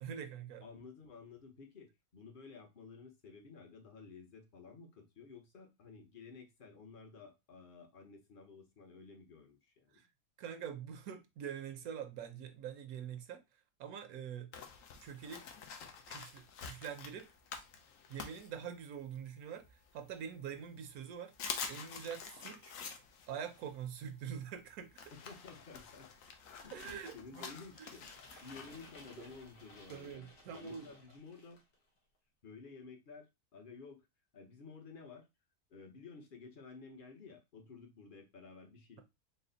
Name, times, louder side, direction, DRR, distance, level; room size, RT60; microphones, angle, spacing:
voice 1, 0.0-0.6 9.9-10.1 10.4-13.4 13.8-14.5 15.0-15.4 16.1-17.3 18.1-21.3 21.7-22.7 23.3-25.1 26.7-27.5 27.8-27.9 28.3-28.4 29.9-30.9, right 8 dB, 75° right, 1.0 m, -45 dB
voice 2, 0.6-10.0 25.1-26.1 26.6-31.6 32.4-34.1 34.3-35.3 35.7-39.0, left 4 dB, 45° left, 0.8 m, -53 dB
sound 1, 14.5-19.2 19.6-20.6 20.9-21.0 21.3-30.1, left 6 dB, 65° left, 1.0 m, -48 dB
sound 2, 27.7-31.8, left 2 dB, 90° left, 1.7 m, -58 dB
4.1 x 2.0 x 3.9 m
omnidirectional pair, 1.6 m